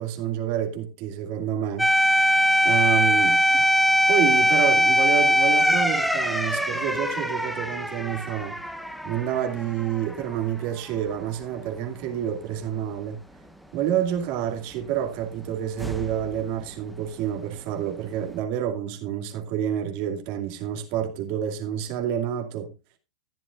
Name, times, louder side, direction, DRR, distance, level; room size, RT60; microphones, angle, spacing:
voice 1, 0.0-1.9 2.6-3.6 4.1-8.6 9.0-13.2 13.7-22.7, right 10 dB, 50° right, 2.4 m, -28 dB
sound 1, 1.8-10.4 10.8-10.9 15.8-16.3, equal, ahead, 1.1 m, -22 dB
14.0 x 11.0 x 2.4 m
supercardioid pair, 130°, 3 cm